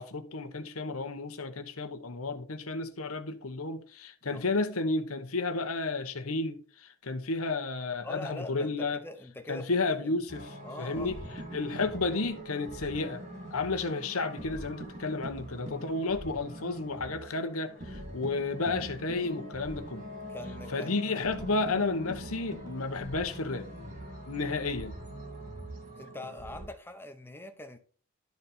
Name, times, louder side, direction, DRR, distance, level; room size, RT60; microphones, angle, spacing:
voice 1, 0.0-9.0 9.5-10.3 10.8-11.2 11.5-13.2 13.5-20.0 20.7-23.7 24.3-25.0, left 3 dB, 80° left, 1.1 m, -32 dB
voice 2, 8.0-10.2 10.6-11.1 20.3-21.0 26.0-27.8, left 2 dB, 10° left, 0.9 m, -43 dB
sound 1, 10.3-26.7, equal, 35° right, 2.8 m, -43 dB
12.0 x 4.1 x 4.3 m
head